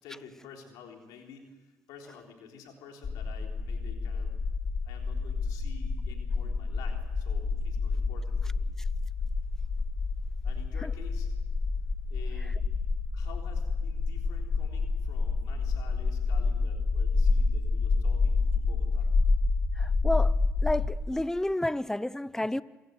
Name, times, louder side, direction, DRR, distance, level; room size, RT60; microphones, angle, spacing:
voice 1, 0.0-4.3 4.8-8.7 10.4-11.3 12.1-12.6 13.1-19.1, left 6 dB, 85° left, 3.7 m, -50 dB
sound 1, 3.0-21.0, left 4 dB, 45° left, 2.4 m, -28 dB
voice 2, 19.8-20.3 20.6-22.6, left 1 dB, 5° left, 0.8 m, -30 dB
27.5 x 17.5 x 8.1 m
supercardioid pair, 65°, 6 cm